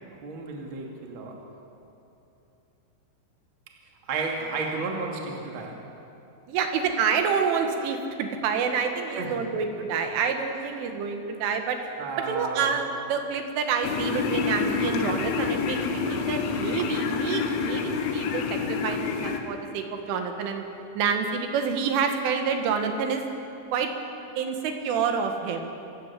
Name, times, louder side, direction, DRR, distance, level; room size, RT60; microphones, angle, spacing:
voice 1, 0.2-1.4 4.0-5.8 9.1-9.4 12.0-12.7, right 4 dB, 35° right, 0 dB, 2.4 m, -32 dB
voice 2, 6.5-11.8 12.3-20.6 21.0-23.2 23.7-23.9 24.4-25.7, right 6 dB, 85° right, 5 dB, 4.2 m, -28 dB
sound 1, 13.8-19.4, left 5 dB, 80° left, 3.9 m, -28 dB
26.0 x 16.0 x 8.3 m, 2.8 s
omnidirectional pair, 5.4 m